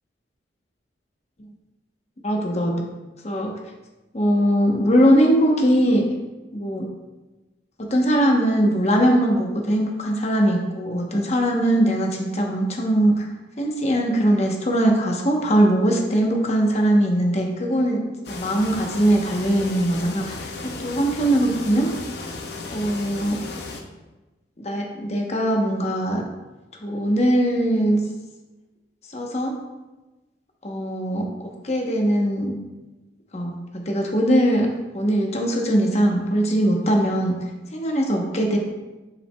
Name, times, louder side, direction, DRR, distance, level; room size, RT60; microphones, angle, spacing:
voice 1, 2.2-2.9 3.2-3.5 4.1-6.0 6.5-6.9 7.9-13.3 13.6-21.9 22.7-23.4 24.6-26.2 26.8-28.0 29.1-29.5 30.6-32.5 33.3-34.7 34.9-37.4 37.7-38.6, right 1 dB, 40° left, 1 dB, 0.9 m, -21 dB
sound 1, 18.2-23.8, left 3 dB, 65° left, 0.7 m, -35 dB
7.8 x 5.9 x 2.3 m, 1.1 s
head